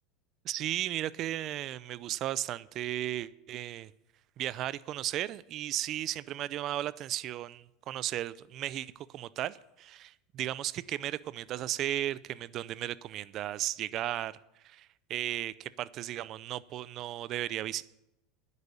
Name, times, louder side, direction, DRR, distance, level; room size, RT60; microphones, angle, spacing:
voice 1, 0.4-3.9 4.4-14.3 14.6-17.8, right 13 dB, 45° right, 18 dB, 0.5 m, -35 dB
10.5 x 8.3 x 8.4 m, 0.87 s
supercardioid pair, 135°, 0 cm